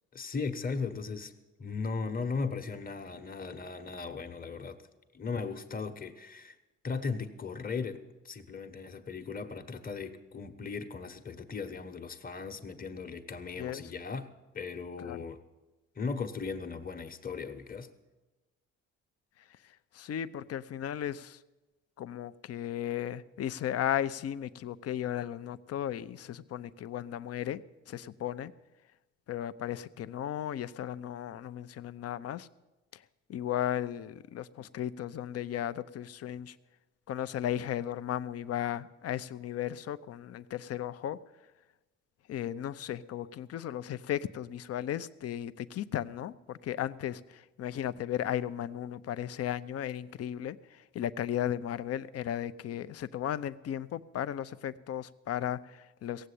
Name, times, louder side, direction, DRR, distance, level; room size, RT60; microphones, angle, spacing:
voice 1, 0.1-1.3 1.6-4.8 5.1-6.6 6.8-8.0 8.2-14.3 14.5-15.4 15.9-17.9, left 4 dB, 30° left, 7 dB, 1.1 m, -37 dB
voice 2, 19.5-21.4 22.0-27.6 27.9-28.5 29.3-32.5 32.9-33.0 33.3-36.6 37.1-41.2 42.3-56.3, left 11 dB, 55° left, 15 dB, 0.6 m, -35 dB
16.5 x 7.7 x 8.3 m, 1.1 s
cardioid pair, 90°, 30 cm